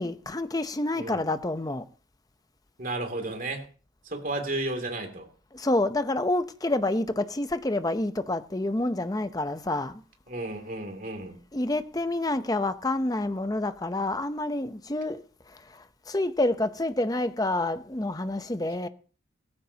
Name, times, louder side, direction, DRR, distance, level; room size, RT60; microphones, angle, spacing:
voice 1, 0.0-1.8 5.5-10.0 11.5-15.2 15.5-18.9, left 2 dB, 20° left, 0.7 m, -28 dB
voice 2, 2.8-3.7 4.1-5.3 10.3-11.4, right 2 dB, 45° right, 2.7 m, -33 dB
17.5 x 15.0 x 2.9 m
head